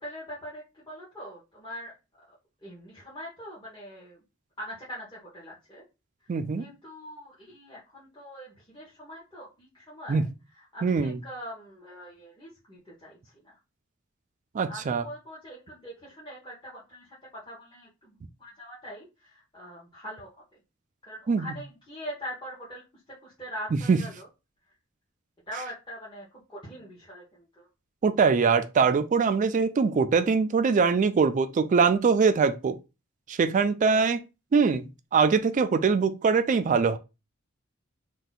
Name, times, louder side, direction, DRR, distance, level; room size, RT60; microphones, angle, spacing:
voice 1, 0.0-1.9 2.3-2.4 2.6-4.2 4.6-5.8 6.6-10.3 10.5-13.6 14.7-20.4 21.1-22.8 23.2-24.3 25.5-27.7, equal, 20° left, 1.0 m, -42 dB
voice 2, 6.3-6.6 10.1-10.2 10.8-11.2 14.5-15.0 21.3-21.5 23.9-24.0 28.0-32.8 33.3-34.2 34.5-37.0, right 5 dB, 35° right, 0.3 m, -23 dB
2.7 x 2.2 x 4.0 m
head